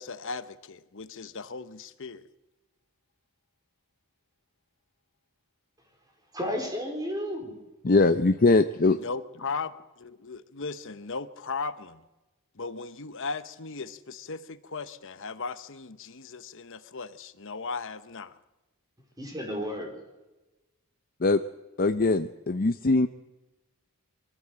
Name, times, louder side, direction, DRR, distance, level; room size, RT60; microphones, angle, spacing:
voice 1, 0.0-2.3 8.9-12.0 12.5-18.3, left 4 dB, 60° left, 12 dB, 1.0 m, -37 dB
voice 2, 6.3-7.6 19.2-20.1, equal, 15° right, 2 dB, 4.4 m, -33 dB
voice 3, 7.8-9.0 21.2-21.4 21.8-23.1, left 3 dB, 40° left, 8 dB, 0.6 m, -21 dB
23.5 x 14.5 x 7.7 m, 1.1 s
head